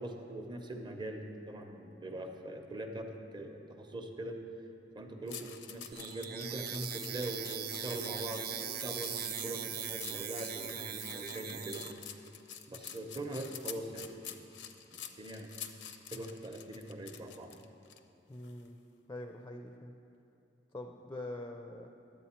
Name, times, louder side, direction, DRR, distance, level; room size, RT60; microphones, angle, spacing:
voice 1, 0.0-4.4 4.9-11.8 12.7-14.3 14.9-15.5 16.1-17.5, right 1 dB, 25° right, 4 dB, 0.7 m, -42 dB
sound 1, 5.3-18.0 18.4-18.7, left 9 dB, 80° left, 0.5 m, -48 dB
sound 2, 5.9-11.9, right 8 dB, 60° right, 0.4 m, -40 dB
voice 2, 18.3-18.8 19.1-20.0 20.7-21.9, left 1 dB, 15° left, 3 dB, 0.4 m, -44 dB
11.0 x 7.9 x 4.3 m, 2.7 s
head